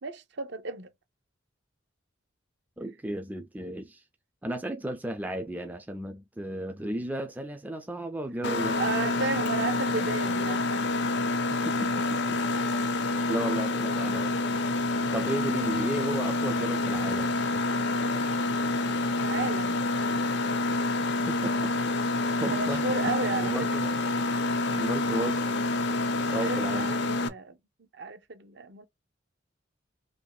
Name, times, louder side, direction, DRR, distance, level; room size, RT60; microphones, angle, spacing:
voice 1, 0.0-0.9 8.8-10.9 19.1-19.9 22.4-23.7 24.7-24.8 26.4-27.6 27.9-28.9, right 4 dB, 55° right, 0.6 m, -33 dB
voice 2, 2.8-4.0 4.4-8.8 11.5-12.6 13.0-14.4 15.1-17.4 20.7-20.8 21.3-22.8 23.4-23.9 24.7-25.6 26.3-26.9, right 1 dB, 10° right, 0.4 m, -34 dB
Mechanisms, 8.4-27.3, left 2 dB, 55° left, 0.5 m, -27 dB
2.9 x 2.6 x 3.9 m
head